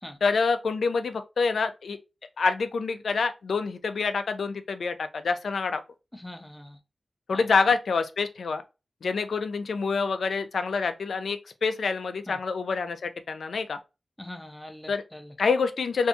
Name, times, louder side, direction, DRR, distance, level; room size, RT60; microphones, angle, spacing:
voice 1, 0.2-2.0 2.4-5.8 7.3-8.6 9.0-13.8 14.9-15.0 15.4-16.1, left 4 dB, 85° left, 0.4 m, -27 dB
voice 2, 6.1-6.8 7.3-7.4 12.3-12.4 14.2-15.3, left 1 dB, 10° left, 0.5 m, -42 dB
2.6 x 2.2 x 2.5 m
wide cardioid pair, 125°, 0 cm